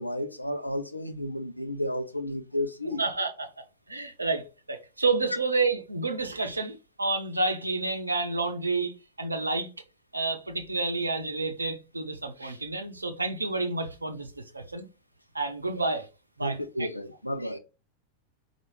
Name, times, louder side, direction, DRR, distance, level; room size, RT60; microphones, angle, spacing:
voice 1, 0.0-3.0 15.7-15.9 16.4-17.6, left 1 dB, 85° left, 0.5 m, -32 dB
voice 2, 3.0-3.5 3.9-9.7 10.1-14.9 15.3-16.1 16.4-16.9, right 3 dB, 80° right, 0.6 m, -30 dB
4.5 x 2.4 x 3.1 m
figure-of-eight pair, 90°, 0 cm